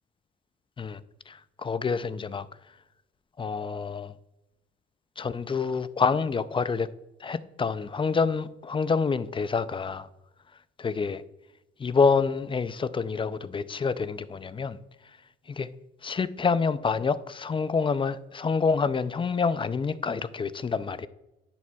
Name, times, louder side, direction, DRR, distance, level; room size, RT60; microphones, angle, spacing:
voice 1, 1.3-2.5 3.4-4.1 5.2-6.9 7.2-10.1 10.8-11.2 11.8-14.8 15.5-15.7 16.0-21.1, left 5 dB, 25° left, 0.4 m, -27 dB
10.5 x 7.2 x 2.3 m
cardioid pair, 90°, 20 cm